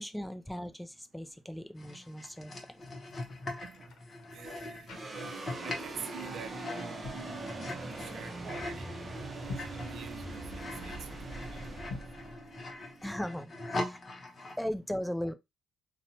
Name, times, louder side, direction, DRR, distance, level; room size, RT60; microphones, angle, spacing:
voice 1, 0.0-2.5 13.0-14.0 14.6-15.3, equal, 5° left, 0.3 m, -37 dB
sound 1, 1.8-8.9 9.3-14.6, left 2 dB, 35° left, 0.7 m, -42 dB
sound 2, 2.7-5.7 5.9-6.2 6.8-7.3 9.3-9.9 11.8-12.3, left 3 dB, 80° left, 0.7 m, -46 dB
voice 2, 4.3-5.3 5.6-7.0 7.5-8.9 9.3-10.4 10.8-10.9 11.3-11.6, right 7 dB, 70° right, 0.4 m, -46 dB
sound 3, 4.9-13.4, right 2 dB, 35° right, 0.7 m, -42 dB
2.7 x 2.1 x 2.8 m
cardioid pair, 90°, 0 cm